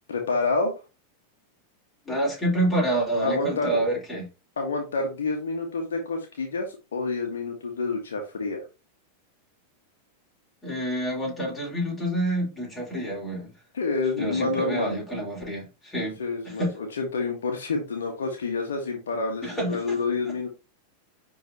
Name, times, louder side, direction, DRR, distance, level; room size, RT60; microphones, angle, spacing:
voice 1, 0.1-0.7 3.2-3.8 4.6-8.6 13.7-14.9 16.2-20.5, left 3 dB, 65° left, 1.7 m, -28 dB
voice 2, 2.0-4.3 10.6-13.5 14.2-16.2 16.4-16.7 19.4-20.0 20.2-20.5, right 1 dB, 10° left, 4.7 m, -28 dB
10.5 x 3.9 x 2.9 m
figure-of-eight pair, 90°, 0 cm